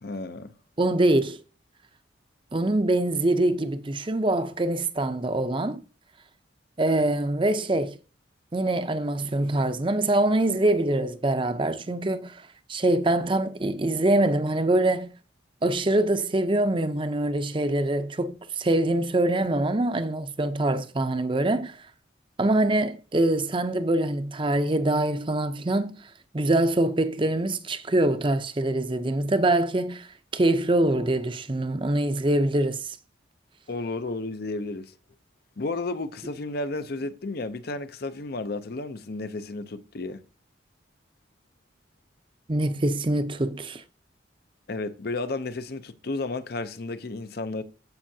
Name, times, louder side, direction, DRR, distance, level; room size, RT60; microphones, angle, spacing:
voice 1, 0.0-0.5 33.7-34.9 35.6-40.2 44.7-47.6, left 2 dB, 55° left, 0.6 m, -32 dB
voice 2, 0.8-1.4 2.5-5.8 6.8-8.0 8.5-12.4 12.7-15.1 15.6-21.8 22.4-26.0 26.3-30.1 30.3-32.9 42.5-43.8, right 1 dB, 25° right, 0.6 m, -24 dB
14.5 x 5.5 x 2.8 m
head